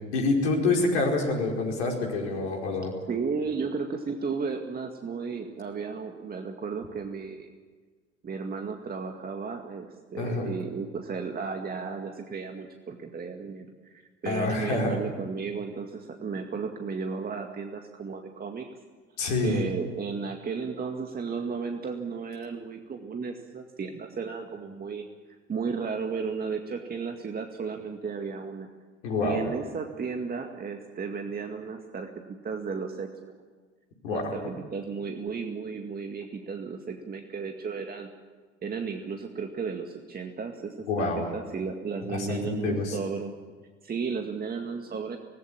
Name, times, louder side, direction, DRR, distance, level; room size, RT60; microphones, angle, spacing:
voice 1, 0.1-2.9 10.2-10.5 14.2-15.0 19.2-19.6 29.0-29.4 34.0-34.4 40.9-41.3 42.1-43.0, left 3 dB, 65° left, 1 dB, 5.0 m, -27 dB
voice 2, 3.1-7.5 8.2-18.7 19.4-25.1 25.5-28.7 29.2-33.3 34.1-38.1 38.6-43.3 43.8-45.2, right 5 dB, 25° right, 4 dB, 2.1 m, -34 dB
26.0 x 19.0 x 8.8 m, 1.4 s
figure-of-eight pair, 70°, 37 cm